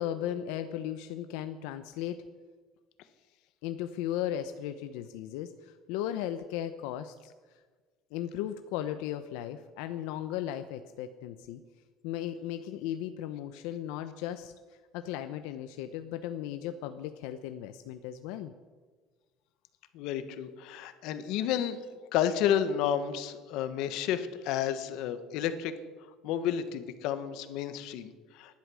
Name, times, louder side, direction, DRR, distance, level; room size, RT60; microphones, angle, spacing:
voice 1, 0.0-2.2 3.6-7.3 8.1-11.6 12.0-14.5 14.9-18.5, left 11 dB, 80° left, 9 dB, 0.8 m, -36 dB
voice 2, 19.9-21.8 22.1-25.7 26.2-28.6, left 9 dB, 60° left, 11 dB, 1.4 m, -31 dB
19.0 x 11.5 x 6.4 m, 1.4 s
cardioid pair, 175°, 0 cm